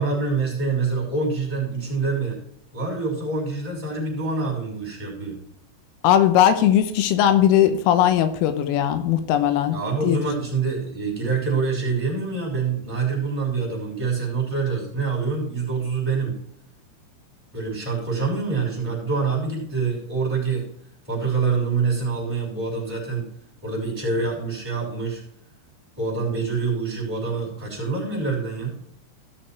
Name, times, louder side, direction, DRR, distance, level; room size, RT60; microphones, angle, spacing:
voice 1, 0.0-2.4 2.7-5.4 9.7-16.4 17.5-20.7 21.1-23.3 23.6-25.2 26.0-28.7, right 4 dB, 5° right, -4 dB, 5.1 m, -26 dB
voice 2, 6.0-9.8 10.0-10.2, left 10 dB, 90° left, 9 dB, 3.6 m, -18 dB
16.0 x 6.6 x 4.5 m, 0.70 s
omnidirectional pair, 5.8 m